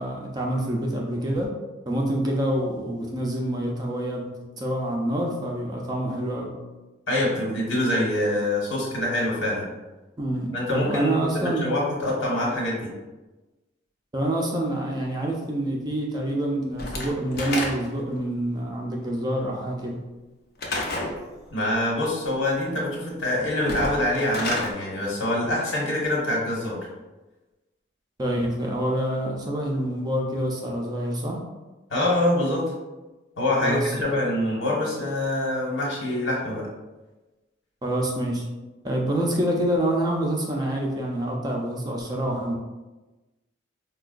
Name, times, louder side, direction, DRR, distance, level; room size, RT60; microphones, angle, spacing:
voice 1, 0.0-1.5 1.9-4.3 4.6-6.5 10.2-11.6 12.4-12.5 14.1-20.0 28.2-31.4 33.6-34.2 37.8-38.4 38.8-42.5, right 1 dB, 20° right, -1 dB, 0.4 m, -27 dB
voice 2, 7.1-9.7 10.5-12.9 21.5-26.8 31.9-32.7 33.4-36.7, left 1 dB, 85° left, -5 dB, 1.2 m, -25 dB
Slam / Wood, 16.8-18.1 20.6-21.2 23.6-24.7, left 2 dB, 50° left, 0.6 m, -29 dB
4.7 x 2.2 x 2.4 m, 1.1 s
head